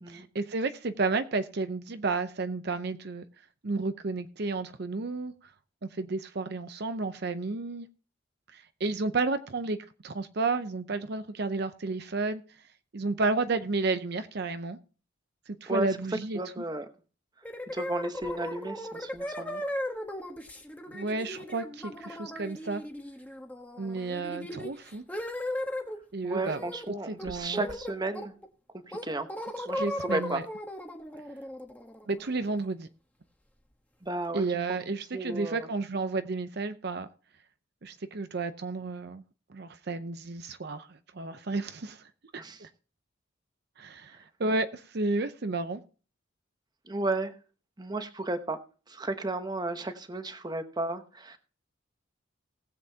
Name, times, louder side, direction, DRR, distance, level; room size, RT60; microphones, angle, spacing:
voice 1, 0.1-3.2 3.6-5.3 5.9-7.9 8.5-9.8 10.0-12.4 12.9-14.8 15.5-16.4 20.9-22.8 23.8-25.0 26.1-26.6 27.1-27.6 29.6-30.4 32.1-32.9 34.3-37.1 37.8-39.2 39.5-42.7 43.8-45.8, right 3 dB, 55° right, 0.6 m, -32 dB
voice 2, 16.3-16.9 17.7-19.6 26.2-28.3 28.9-29.3 29.7-30.4 34.0-34.8 35.1-35.7 42.3-42.6 46.9-47.3 47.8-48.6 48.9-51.4, right 2 dB, 20° right, 0.9 m, -34 dB
sound 1, 17.4-26.0 26.4-26.9 27.2-28.5 28.9-32.7, left 1 dB, 10° left, 1.2 m, -37 dB
19.0 x 7.7 x 2.8 m
head